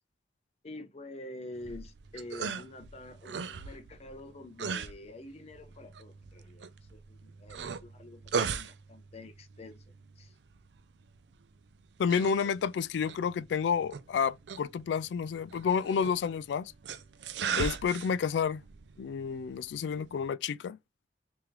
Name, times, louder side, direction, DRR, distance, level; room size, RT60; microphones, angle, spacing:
voice 1, 0.6-10.3, left 2 dB, 35° left, 0.6 m, -47 dB
sound 1, 1.6-20.3, right 6 dB, 80° right, 0.5 m, -40 dB
voice 2, 12.0-16.7 17.5-18.6 19.0-20.8, left 6 dB, 85° left, 0.3 m, -30 dB
3.6 x 3.1 x 3.0 m
head